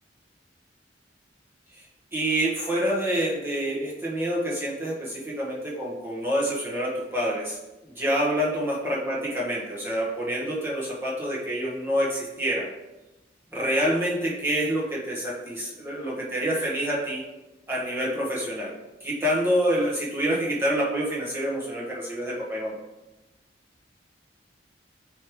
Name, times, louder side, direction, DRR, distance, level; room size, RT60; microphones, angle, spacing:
voice 1, 2.1-7.6 7.9-12.7 13.5-17.2 17.7-18.7 19.0-22.8, equal, 15° right, -5 dB, 1.4 m, -27 dB
8.4 x 3.2 x 3.6 m, 1.0 s
head